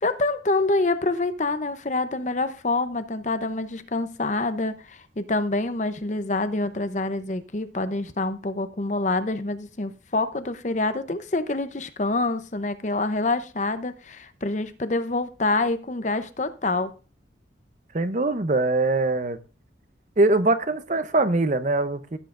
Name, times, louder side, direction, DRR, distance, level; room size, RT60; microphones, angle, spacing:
voice 1, 0.0-16.9, left 2 dB, 40° left, 0.7 m, -26 dB
voice 2, 17.9-19.4 20.2-22.2, right 2 dB, 40° right, 0.7 m, -22 dB
15.5 x 8.2 x 2.5 m
head